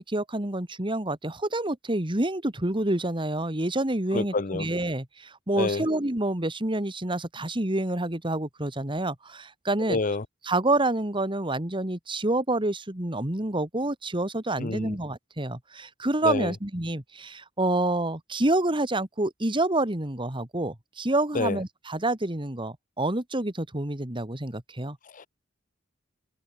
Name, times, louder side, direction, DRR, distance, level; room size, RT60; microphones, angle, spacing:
voice 1, 0.0-10.0 10.4-25.0, right 2 dB, 25° right, 2.3 m, -28 dB
voice 2, 4.1-4.7 5.6-5.8 9.9-10.2 14.6-15.0 16.2-16.5 21.3-21.6 25.1-25.3, left 3 dB, 45° left, 0.8 m, -28 dB
head